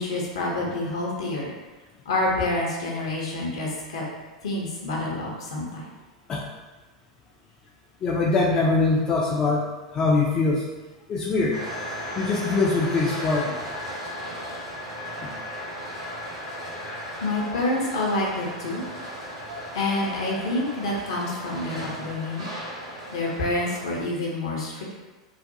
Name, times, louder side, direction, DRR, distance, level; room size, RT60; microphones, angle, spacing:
voice 1, 0.0-1.5 2.1-4.0 4.4-5.9 17.2-18.8 19.7-22.5 23.1-24.8, left 2 dB, 60° left, -2 dB, 0.6 m, -27 dB
voice 2, 8.0-9.6 9.9-10.7 11.1-11.6 12.2-13.6, left 3 dB, 25° left, -3 dB, 0.3 m, -22 dB
sound 1, 11.5-23.8, equal, 65° right, 0.9 m, -36 dB
2.4 x 2.1 x 2.7 m, 1.2 s
figure-of-eight pair, 90°, 3 cm